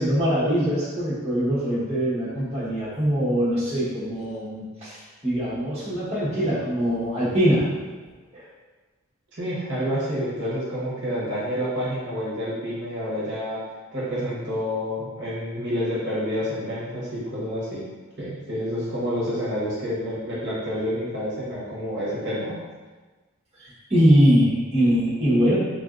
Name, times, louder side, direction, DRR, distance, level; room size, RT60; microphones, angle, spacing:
voice 1, 0.0-7.7 8.3-8.4 23.6-25.5, equal, 30° right, -10 dB, 1.0 m, -22 dB
voice 2, 9.3-13.6 13.9-17.8 18.2-22.6, equal, 55° right, -8 dB, 0.9 m, -28 dB
3.7 x 2.5 x 2.4 m, 1.3 s
head